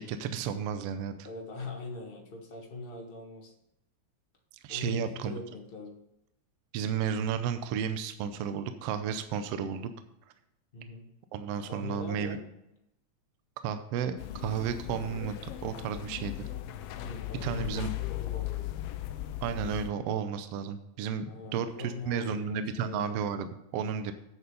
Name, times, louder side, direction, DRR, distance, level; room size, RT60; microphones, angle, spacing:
voice 1, 0.0-1.3 4.6-5.3 6.7-9.9 11.3-12.4 13.6-15.4 15.6-16.5 17.4-17.9 19.4-24.1, right 7 dB, 75° right, 10 dB, 1.5 m, -33 dB
voice 2, 1.2-3.5 4.7-6.0 10.7-11.1 11.6-12.4 17.0-17.8 18.2-18.5 21.3-23.2, left 3 dB, 35° left, 2 dB, 0.9 m, -41 dB
sound 1, 14.2-19.9, left 13 dB, 85° left, 1.3 m, -37 dB
8.4 x 7.0 x 5.4 m, 0.82 s
omnidirectional pair, 3.3 m